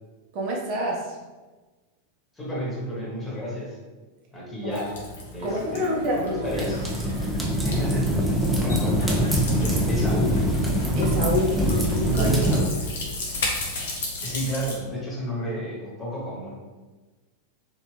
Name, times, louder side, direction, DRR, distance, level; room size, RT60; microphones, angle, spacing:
voice 1, 0.3-1.2 4.6-4.8 5.4-6.6 11.0-12.4, equal, 45° right, -2 dB, 0.7 m, -27 dB
voice 2, 2.3-3.8 4.3-4.9 5.3-6.9 7.6-9.3 9.6-10.4 12.4-12.7 14.2-16.6, left 1 dB, 15° left, -5 dB, 1.2 m, -31 dB
sound 1, 4.7-14.8, left 2 dB, 60° left, 0.8 m, -35 dB
sound 2, 6.4-12.6, right 1 dB, 5° right, 0.6 m, -23 dB
3.2 x 2.9 x 3.3 m, 1.3 s
figure-of-eight pair, 90°, 0 cm